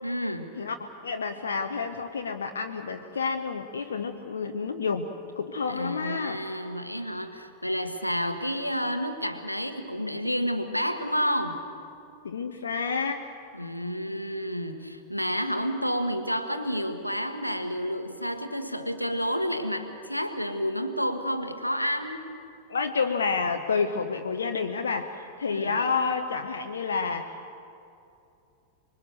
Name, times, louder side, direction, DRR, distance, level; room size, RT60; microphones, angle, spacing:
voice 1, 0.0-0.5 5.7-11.6 13.5-22.2 25.5-25.8, equal, 90° left, 8 dB, 1.4 m, -30 dB
voice 2, 0.6-5.1 5.4-6.4 12.2-13.3 22.7-27.6, left 5 dB, 70° left, 4 dB, 0.9 m, -29 dB
25.5 x 22.5 x 6.7 m, 2.7 s
figure-of-eight pair, 90°, 0 cm